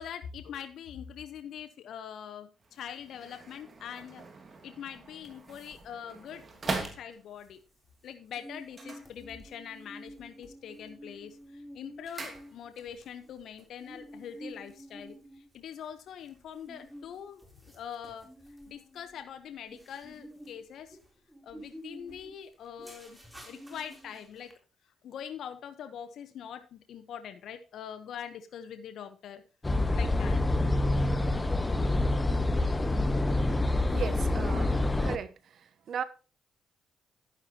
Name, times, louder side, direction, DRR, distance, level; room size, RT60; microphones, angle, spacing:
voice 1, 0.0-4.2 4.6-7.6 8.0-18.3 18.7-21.0 21.4-23.2 23.5-24.5 25.0-29.4 29.9-30.4 31.8-31.9, left 8 dB, 70° left, 1.1 m, -43 dB
sound 1, 2.6-7.6 8.6-9.8 10.1-10.6 10.9-13.0 13.3-13.4, right 3 dB, 35° right, 2.7 m, -41 dB
sound 2, 5.2-5.9 6.1-6.2 6.6-7.0 7.4-24.5, equal, 5° right, 3.6 m, -50 dB
sound 3, 29.6-35.2, left 2 dB, 20° left, 1.0 m, -27 dB
voice 2, 33.9-35.3 35.9-36.0, right 7 dB, 60° right, 1.0 m, -36 dB
11.0 x 10.5 x 3.0 m
cardioid pair, 90°, 0 cm